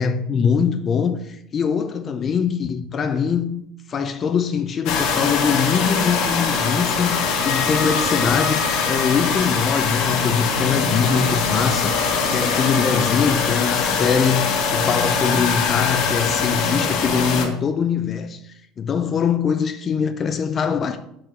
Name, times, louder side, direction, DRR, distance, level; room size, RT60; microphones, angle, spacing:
voice 1, 0.0-3.6 3.9-11.9 12.3-18.4 18.8-21.0, left 6 dB, 30° left, 0.6 m, -22 dB
sound 1, 4.9-17.5, left 5 dB, 65° left, 1.7 m, -22 dB
6.4 x 4.6 x 6.0 m
cardioid pair, 130°, 0 cm